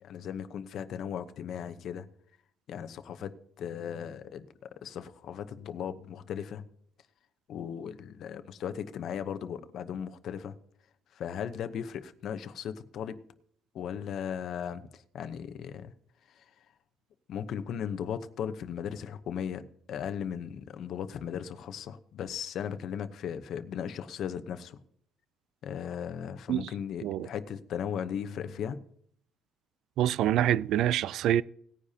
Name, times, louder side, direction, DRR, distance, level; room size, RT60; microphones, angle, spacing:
voice 1, 0.0-2.1 2.7-4.5 4.8-6.7 7.5-10.5 11.1-13.2 13.7-15.9 16.3-16.4 17.3-24.8 25.6-28.8, left 8 dB, 50° left, 0.8 m, -37 dB
voice 2, 30.0-31.4, right 12 dB, 65° right, 0.3 m, -26 dB
18.5 x 9.9 x 2.8 m
cardioid pair, 155°, 0 cm